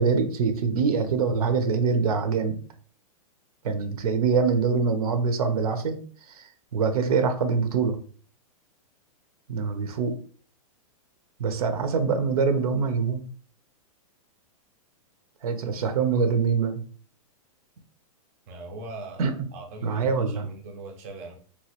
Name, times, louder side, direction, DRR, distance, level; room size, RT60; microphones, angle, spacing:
voice 1, 0.0-2.6 3.6-6.0 6.3-8.0 9.5-10.2 11.4-13.2 15.4-16.8 19.2-19.5 19.8-20.5, right 5 dB, 85° right, 8 dB, 0.7 m, -24 dB
voice 2, 18.5-21.3, right 2 dB, 25° right, 2 dB, 0.4 m, -40 dB
3.0 x 2.3 x 2.9 m, 0.43 s
supercardioid pair, 175°, 18 cm